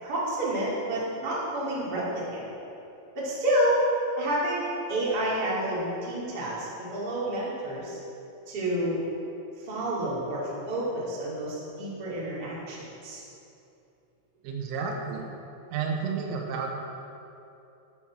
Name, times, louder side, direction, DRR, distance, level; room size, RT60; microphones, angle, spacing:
voice 1, 0.0-2.4 3.1-3.8 4.2-8.0 8.5-9.0 9.6-12.8 13.0-13.2, right 1 dB, 30° right, -7 dB, 2.0 m, -29 dB
voice 2, 14.4-15.3 15.7-16.8, right 5 dB, 85° right, 1 dB, 3.5 m, -31 dB
12.0 x 9.9 x 4.3 m, 2.8 s
omnidirectional pair, 5.8 m